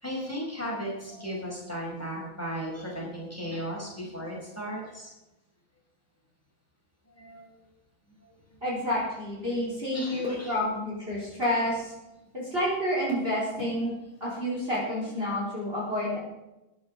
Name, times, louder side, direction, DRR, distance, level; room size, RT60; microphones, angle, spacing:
voice 1, 0.0-5.1 7.2-7.5 9.9-10.5 13.8-14.0, equal, 5° left, -4 dB, 5.0 m, -36 dB
voice 2, 8.6-11.9 12.3-13.9 14.2-16.2, left 1 dB, 30° right, -6 dB, 4.4 m, -29 dB
14.0 x 11.0 x 5.3 m, 0.97 s
omnidirectional pair, 2.1 m